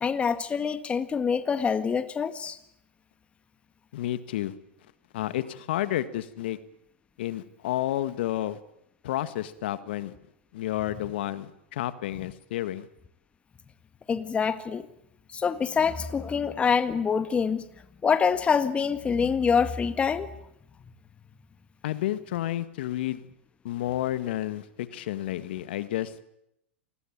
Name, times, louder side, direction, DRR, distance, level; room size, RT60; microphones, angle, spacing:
voice 1, 0.0-2.6 14.1-14.8 15.3-17.6 18.0-20.3, left 6 dB, 20° left, 12 dB, 1.7 m, -25 dB
voice 2, 3.9-4.5 5.1-6.6 7.2-8.6 9.0-10.1 10.5-12.9 21.8-23.2 23.6-26.2, left 13 dB, 60° left, 14 dB, 1.8 m, -31 dB
28.0 x 21.0 x 8.8 m, 0.80 s
hypercardioid pair, 105°, 6 cm